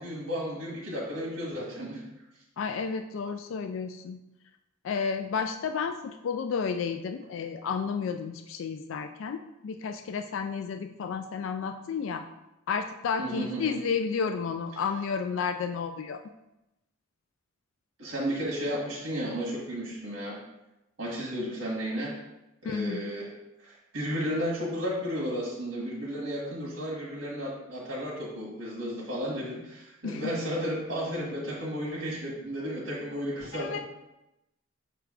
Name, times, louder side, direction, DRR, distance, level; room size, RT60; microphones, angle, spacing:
voice 1, 0.0-2.0 13.2-13.8 18.0-20.4 21.0-22.1 22.6-23.3 23.6-33.8, equal, 60° right, -5 dB, 1.4 m, -33 dB
voice 2, 2.6-4.2 4.8-12.2 12.7-16.2 22.6-23.1 30.0-30.3 33.5-33.8, left 6 dB, 65° left, 7 dB, 0.3 m, -32 dB
6.0 x 3.3 x 4.8 m, 0.94 s
head